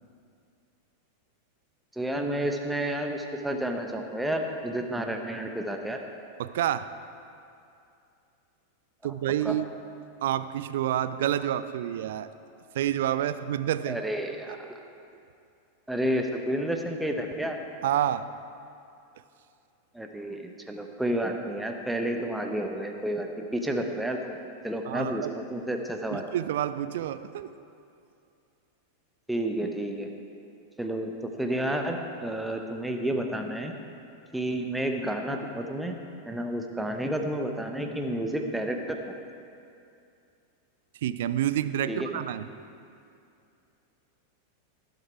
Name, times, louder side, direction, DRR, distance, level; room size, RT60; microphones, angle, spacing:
voice 1, 1.9-6.0 9.4-9.6 13.9-14.7 15.9-17.6 19.9-24.4 24.6-26.2 29.3-30.1 30.8-33.8 34.3-36.0 36.3-39.2 41.9-42.2, right 1 dB, 5° right, 3 dB, 1.0 m, -30 dB
voice 2, 6.4-6.9 9.0-9.7 10.2-12.3 12.7-14.0 17.8-18.3 24.9-25.3 26.1-27.5 41.0-42.4, right 11 dB, 55° right, 13 dB, 0.5 m, -28 dB
18.5 x 7.9 x 4.6 m, 2.5 s
figure-of-eight pair, 90°, 0 cm